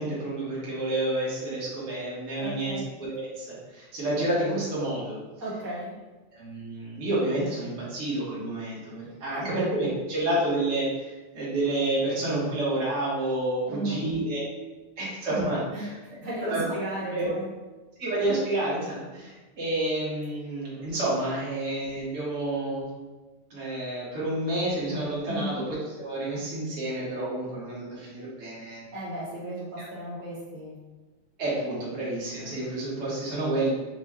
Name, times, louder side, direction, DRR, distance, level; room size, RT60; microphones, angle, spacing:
voice 1, 0.0-5.2 6.3-14.4 15.0-16.0 16.5-16.6 17.1-17.3 18.0-22.9 23.5-28.8 29.8-29.9 31.4-33.7, right 1 dB, 75° right, -8 dB, 0.7 m, -29 dB
voice 2, 2.4-2.9 5.4-6.0 9.3-9.7 13.7-14.1 15.7-17.5 25.3-25.6 28.9-30.8, right 1 dB, 60° right, -8 dB, 1.0 m, -35 dB
6.0 x 2.1 x 3.6 m, 1.2 s
omnidirectional pair, 3.4 m